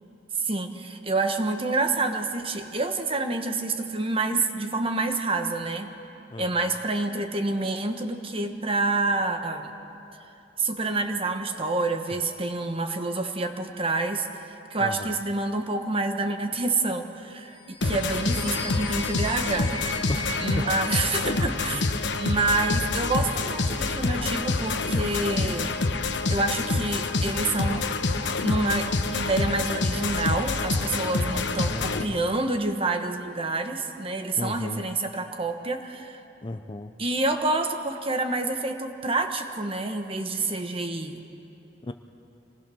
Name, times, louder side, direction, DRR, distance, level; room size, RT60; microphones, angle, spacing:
voice 1, 0.4-5.9 6.4-9.7 10.6-14.3 14.7-19.9 20.4-25.8 26.3-27.8 28.4-36.2 37.0-41.2, right 2 dB, 30° right, 6 dB, 1.3 m, -28 dB
voice 2, 6.3-6.7 14.8-15.2 20.1-20.6 21.7-21.8 31.7-32.2 34.4-34.8 36.4-36.9 41.8-41.9, left 2 dB, 25° left, 8 dB, 0.6 m, -34 dB
sound 1, 17.5-21.8, left 2 dB, 10° left, 3.8 m, -39 dB
sound 2, 17.8-32.0, left 3 dB, 75° left, 1.1 m, -27 dB
26.5 x 19.5 x 6.3 m, 2.8 s
head